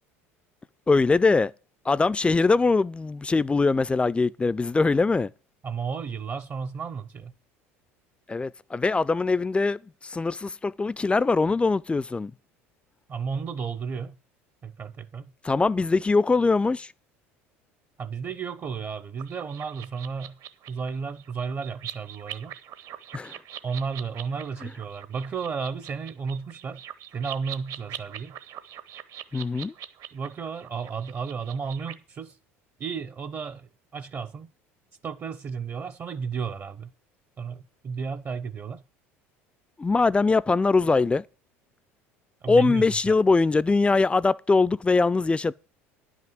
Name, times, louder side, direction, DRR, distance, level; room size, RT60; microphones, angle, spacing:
voice 1, 0.9-1.5 1.9-5.3 8.3-12.3 15.4-16.9 23.1-23.4 24.6-24.7 29.3-29.7 39.8-41.2 42.5-45.5, left 3 dB, 15° left, 0.4 m, -22 dB
voice 2, 5.6-7.3 13.1-14.1 14.6-15.3 18.0-20.4 20.7-22.5 23.6-26.8 27.1-28.4 30.1-32.4 32.8-34.5 35.0-36.9 37.4-38.8 42.4-43.1, right 5 dB, 35° right, 0.8 m, -33 dB
sound 1, 19.2-31.9, right 10 dB, 55° right, 1.1 m, -42 dB
10.5 x 6.0 x 7.8 m
hypercardioid pair, 75°, 7 cm